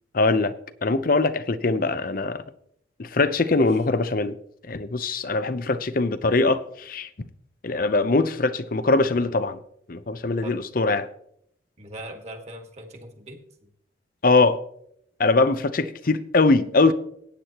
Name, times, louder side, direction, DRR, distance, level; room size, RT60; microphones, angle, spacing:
voice 1, 0.1-0.5 0.8-2.4 3.0-4.4 4.7-7.1 7.6-9.6 9.9-11.1 14.2-14.6 15.2-16.9, left 3 dB, 50° left, 0.7 m, -22 dB
voice 2, 3.5-3.8 7.8-7.9 10.4-10.7 11.8-13.7, right 1 dB, 35° right, 1.9 m, -41 dB
15.5 x 9.5 x 3.0 m
head